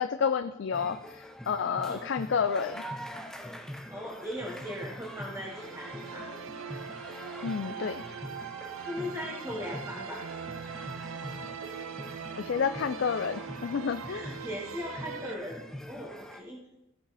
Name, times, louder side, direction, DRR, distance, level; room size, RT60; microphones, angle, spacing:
voice 1, 0.0-2.8 7.4-8.0 12.4-14.2, left 6 dB, 55° left, 10 dB, 0.3 m, -30 dB
sound 1, 0.7-16.4, equal, ahead, 0.5 m, -44 dB
voice 2, 3.9-6.3 8.8-10.2 14.1-16.6, equal, 15° right, -4 dB, 1.3 m, -38 dB
sound 2, 4.9-15.4, right 7 dB, 75° right, 0.5 m, -41 dB
15.5 x 5.3 x 4.1 m, 0.90 s
head